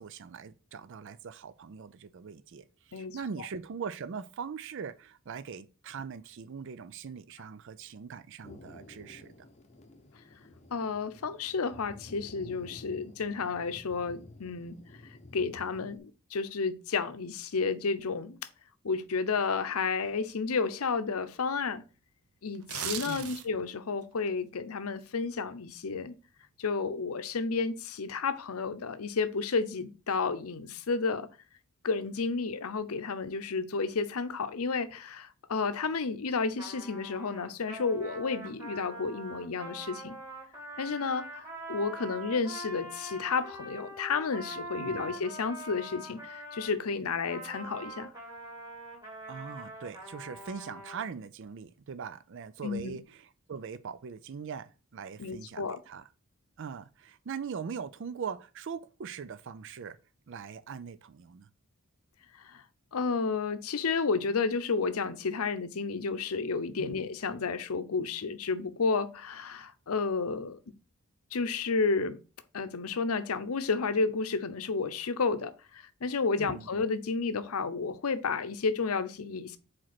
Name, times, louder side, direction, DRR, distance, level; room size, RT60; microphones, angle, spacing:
voice 1, 0.0-9.3 23.0-23.3 44.8-45.0 49.3-56.1 56.6-60.0 60.3-61.5 66.8-67.0 76.4-76.7, right 6 dB, 55° right, 0.4 m, -41 dB
Thunder, 8.4-16.0, left 2 dB, 30° left, 0.8 m, -52 dB
voice 2, 10.7-14.8 15.3-18.4 18.8-21.8 22.4-26.1 26.6-31.3 31.8-40.2 40.8-48.1 52.6-53.0 55.2-55.8 62.4-62.6 62.9-70.6 71.3-72.2 72.5-79.6, left 4 dB, 80° left, 0.7 m, -31 dB
sound 1, 22.5-23.7 24.1-24.3, right 8 dB, 90° right, 0.7 m, -37 dB
Trumpet, 36.6-46.8 47.3-51.1, right 1 dB, 15° right, 2.2 m, -43 dB
5.1 x 4.3 x 5.9 m
head